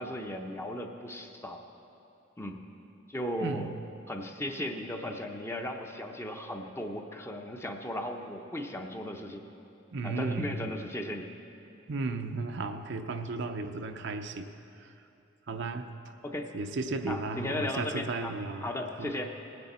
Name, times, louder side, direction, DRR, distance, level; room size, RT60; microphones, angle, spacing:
voice 1, 0.0-1.6 2.4-2.6 3.1-3.7 4.1-9.4 10.0-11.3 16.2-16.5 17.1-18.3 18.6-19.3, left 1 dB, 15° left, 4 dB, 0.7 m, -36 dB
voice 2, 3.4-3.7 9.9-10.7 11.9-14.5 14.8-14.9 15.5-15.9 16.5-18.7 19.0-19.1, right 3 dB, 60° right, 6 dB, 0.6 m, -34 dB
19.0 x 9.7 x 4.2 m, 2.8 s
head